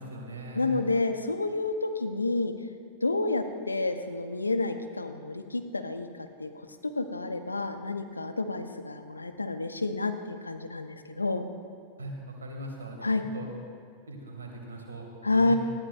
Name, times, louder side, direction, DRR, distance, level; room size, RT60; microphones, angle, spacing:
voice 1, 0.0-0.8 12.0-13.5 14.1-15.6, equal, 70° right, 1 dB, 2.1 m, -40 dB
voice 2, 0.5-2.5 3.0-6.1 6.4-6.7 6.9-11.5 13.0-13.2 15.2-15.6, left 3 dB, 80° left, 8 dB, 0.7 m, -29 dB
19.5 x 14.0 x 2.5 m, 2.2 s
figure-of-eight pair, 90°, 0 cm